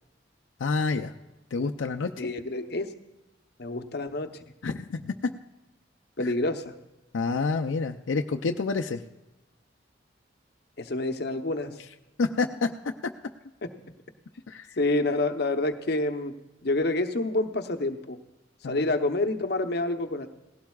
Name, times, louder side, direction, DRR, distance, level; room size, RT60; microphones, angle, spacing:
voice 1, 0.6-1.1 1.5-2.3 4.6-5.3 6.2-6.3 7.1-9.0 12.2-12.7 14.5-14.8 18.6-18.8, left 4 dB, 85° left, 4 dB, 0.5 m, -28 dB
voice 2, 2.2-2.9 3.6-4.4 6.2-6.7 10.8-11.8 13.6-13.7 14.8-16.3 16.6-18.2 18.6-20.3, left 2 dB, 60° left, 7 dB, 0.8 m, -28 dB
18.5 x 16.5 x 2.4 m, 1.0 s
head